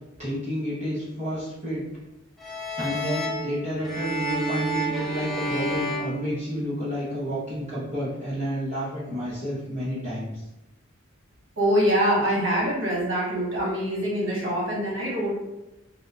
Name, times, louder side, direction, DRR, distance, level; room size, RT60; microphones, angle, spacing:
voice 1, 0.2-1.8 2.5-10.4, equal, 35° right, -11 dB, 0.8 m, -30 dB
sound 1, 2.4-7.0, right 1 dB, ahead, 0.4 m, -30 dB
voice 2, 11.6-15.3, equal, 65° right, -5 dB, 1.1 m, -24 dB
2.7 x 2.0 x 2.3 m, 0.95 s
head